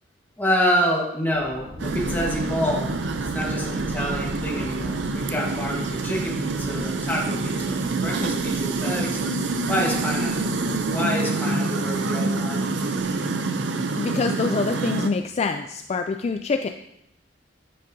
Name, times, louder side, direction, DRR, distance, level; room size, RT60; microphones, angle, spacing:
voice 1, 0.4-2.9 3.2-9.2 9.7-10.3 10.9-12.7, equal, 10° left, -3 dB, 1.4 m, -27 dB
sound 1, 1.3-11.1, equal, 20° right, 2.8 m, -40 dB
sound 2, 1.8-15.1, right 3 dB, 70° right, 0.5 m, -26 dB
voice 2, 14.0-16.7, left 4 dB, 35° left, 6 dB, 0.3 m, -25 dB
10.0 x 7.6 x 2.7 m, 0.81 s
head